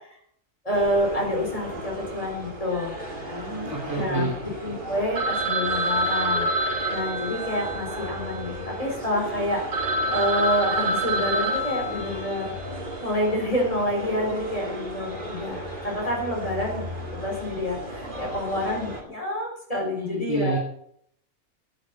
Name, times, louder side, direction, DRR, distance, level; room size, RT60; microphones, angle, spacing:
voice 1, 0.6-2.9 3.9-4.3 4.6-12.5 13.0-16.8 17.2-20.6, left 1 dB, 25° left, -1 dB, 4.2 m, -28 dB
sound 1, 0.7-19.0, right 1 dB, 35° right, 2.4 m, -36 dB
voice 2, 3.3-4.4 19.9-20.6, right 2 dB, 15° right, -2 dB, 2.7 m, -29 dB
Telephone, 5.2-8.9 9.4-9.5 9.7-12.6, right 1 dB, 75° right, 2.0 m, -27 dB
10.0 x 9.8 x 7.1 m, 0.67 s
omnidirectional pair, 1.5 m